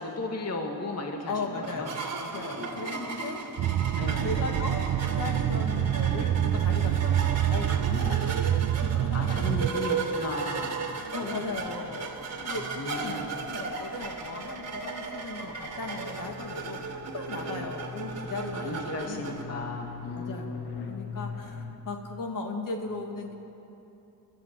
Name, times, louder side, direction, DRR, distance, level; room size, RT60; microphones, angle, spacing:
voice 1, 0.0-1.9 2.3-3.1 4.0-4.3 8.1-8.3 9.1-11.5 12.8-13.3 17.4-17.7 18.5-20.9, left 2 dB, 40° left, 1 dB, 2.2 m, -36 dB
voice 2, 1.3-3.4 4.2-4.8 5.1-9.6 11.1-12.1 12.4-19.7 20.1-23.3, left 3 dB, 60° left, 2 dB, 2.3 m, -37 dB
sound 1, 1.6-19.4, right 4 dB, 45° right, 2.3 m, -36 dB
sound 2, 3.6-9.7, right 11 dB, 75° right, 0.7 m, -26 dB
sound 3, 9.9-21.8, left 5 dB, 90° left, 1.8 m, -44 dB
29.5 x 13.5 x 7.7 m, 3.0 s
wide cardioid pair, 130°, 37 cm